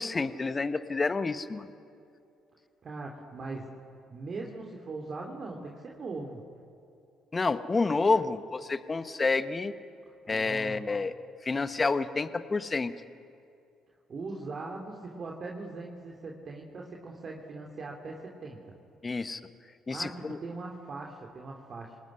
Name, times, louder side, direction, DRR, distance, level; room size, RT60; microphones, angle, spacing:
voice 1, 0.0-1.7 7.3-9.7 10.3-11.1 11.4-12.9 19.0-19.4 19.9-20.4, left 3 dB, 30° left, 12 dB, 1.4 m, -29 dB
voice 2, 2.8-3.7 4.1-6.4 10.3-10.9 14.1-18.7 19.9-22.0, right 3 dB, 45° right, 0 dB, 3.0 m, -40 dB
27.5 x 19.5 x 9.9 m, 2.6 s
hypercardioid pair, 50°, 0 cm